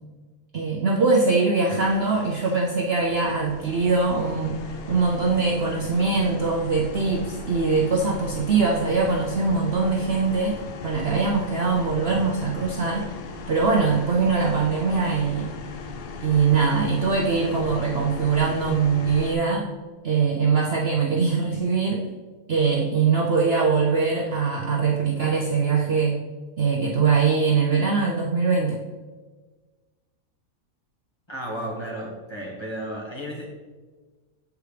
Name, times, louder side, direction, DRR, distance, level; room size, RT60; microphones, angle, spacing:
voice 1, 0.5-4.6 4.9-10.6 10.8-13.2 13.5-15.5 16.2-19.7 20.0-22.0 22.5-26.2 26.6-28.8, right 4 dB, 55° right, -1 dB, 0.8 m, -22 dB
sound 1, 1.7-19.3, left 4 dB, 70° left, 0.5 m, -38 dB
voice 2, 31.3-33.5, equal, 20° left, -4 dB, 1.3 m, -33 dB
7.9 x 4.8 x 3.2 m, 1.4 s
omnidirectional pair, 1.5 m